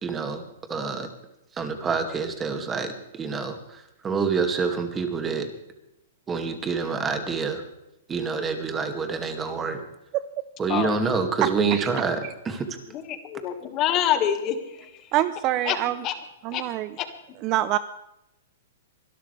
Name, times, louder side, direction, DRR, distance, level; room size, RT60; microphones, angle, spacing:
voice 1, 0.0-0.4 0.7-1.1 1.5-5.5 6.3-7.6 8.1-9.8 10.6-12.8, right 5 dB, 15° right, 6 dB, 2.1 m, -27 dB
voice 2, 11.4-11.9 15.1-16.0 16.4-16.9 17.4-17.8, right 14 dB, 35° right, 15 dB, 0.6 m, -25 dB
voice 3, 12.9-15.0 15.7-15.8 16.0-16.1 16.5-16.6 17.0-17.1, left 10 dB, 30° left, 8 dB, 1.8 m, -26 dB
24.5 x 12.5 x 3.3 m, 0.86 s
hypercardioid pair, 140°, 0 cm